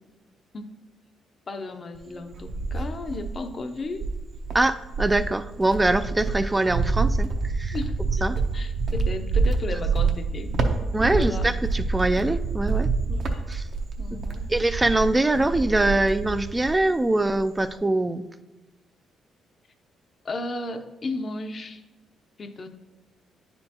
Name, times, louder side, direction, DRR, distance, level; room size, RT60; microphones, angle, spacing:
voice 1, 1.5-4.0 7.7-8.3 8.5-11.5 13.1-13.4 14.0-14.5 20.2-21.8 22.4-22.7, left 2 dB, 40° left, 8 dB, 0.6 m, -34 dB
Cricket, 2.0-3.5 4.0-16.9 17.2-17.8, right 4 dB, 55° right, 0.7 m, -27 dB
voice 2, 4.5-7.3 7.6-7.8 8.2-8.4 10.9-12.9 13.5-13.6 14.5-18.2, right 2 dB, 15° right, 12 dB, 0.3 m, -23 dB
9.5 x 4.3 x 2.8 m, 1.1 s
cardioid pair, 90°, 0 cm